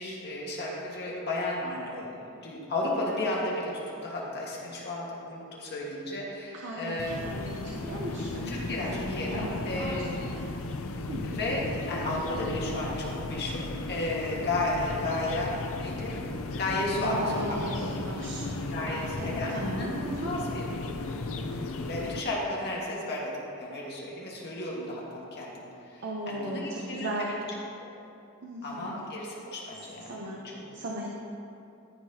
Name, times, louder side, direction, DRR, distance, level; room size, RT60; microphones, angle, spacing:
voice 1, 0.0-3.7 4.0-7.2 8.5-10.2 11.2-16.2 16.6-17.9 18.7-20.6 21.7-25.5 25.9-27.3 27.8-27.9 28.6-30.2 30.5-30.7, left 2 dB, 50° left, -4 dB, 1.7 m, -33 dB
voice 2, 6.5-10.5 11.1-11.3 17.0-18.6 18.9-20.3 26.0-27.3 28.4-29.0 30.1-30.4 30.7-31.1, right 1 dB, 55° right, -3 dB, 0.8 m, -37 dB
sound 1, 7.0-22.2, left 2 dB, 65° left, 0.6 m, -35 dB
14.0 x 5.9 x 2.9 m, 2.7 s
head